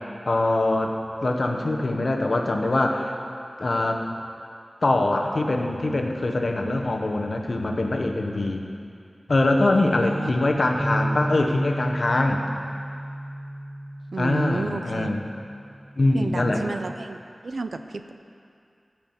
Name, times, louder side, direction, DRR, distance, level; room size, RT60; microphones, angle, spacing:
voice 1, 0.3-0.9 1.2-3.1 3.6-4.0 4.8-8.6 9.3-12.4 14.2-15.2 16.0-16.6, left 2 dB, 60° left, 2 dB, 1.2 m, -23 dB
voice 2, 9.7-10.3 14.1-15.1 16.1-18.1, right 3 dB, 80° right, 8 dB, 0.6 m, -31 dB
Bass guitar, 10.8-17.0, right 1 dB, 10° right, 0.4 m, -32 dB
15.0 x 6.2 x 7.4 m, 2.4 s
wide cardioid pair, 70°, 0 cm